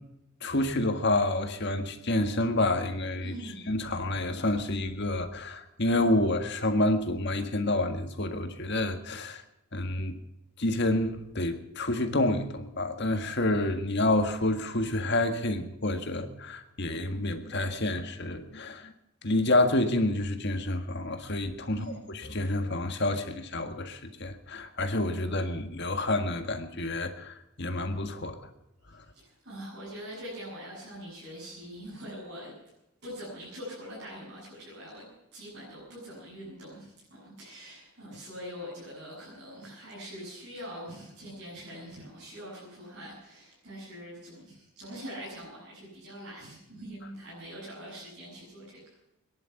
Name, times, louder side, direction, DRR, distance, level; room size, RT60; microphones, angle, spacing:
voice 1, 0.4-3.3 3.7-9.4 9.7-10.1 10.6-18.9 19.2-21.9 22.1-28.4, left 1 dB, 50° left, 6 dB, 1.8 m, -28 dB
voice 2, 3.2-3.7 21.7-22.1 28.9-32.5 33.0-49.0, equal, 50° right, -7 dB, 7.7 m, -43 dB
23.0 x 11.0 x 5.8 m, 0.90 s
head